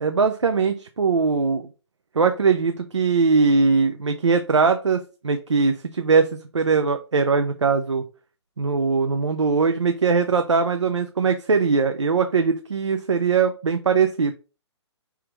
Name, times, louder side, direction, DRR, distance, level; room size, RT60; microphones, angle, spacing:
voice 1, 0.0-1.7 2.1-6.3 6.5-8.0 8.6-14.3, right 5 dB, 90° right, 7 dB, 0.5 m, -21 dB
4.7 x 3.4 x 3.0 m, 0.34 s
figure-of-eight pair, 130°, 15 cm